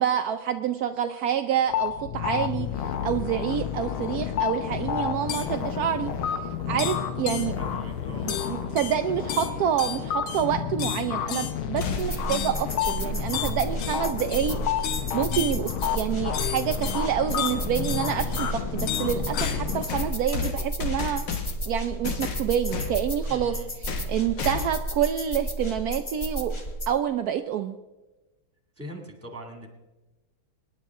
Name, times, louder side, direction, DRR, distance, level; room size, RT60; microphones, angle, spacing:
voice 1, 0.0-6.4 6.7-7.6 8.2-21.2 21.7-26.5 26.9-27.7, right 9 dB, 75° right, 7 dB, 0.8 m, -28 dB
sound 1, 1.7-19.9, left 9 dB, 90° left, 1.8 m, -30 dB
voice 2, 7.6-8.3 23.3-23.7 28.8-29.7, right 1 dB, 5° right, 2 dB, 2.1 m, -41 dB
sound 2, 11.8-12.4 14.5-14.6 15.7-15.8 19.4-21.7 22.0-23.0 23.9-24.1 24.4-24.9, left 5 dB, 65° left, 1.9 m, -32 dB
sound 3, 12.0-26.9, right 1 dB, 30° left, 0.5 m, -33 dB
25.0 x 10.5 x 3.6 m, 1.1 s
omnidirectional pair, 2.2 m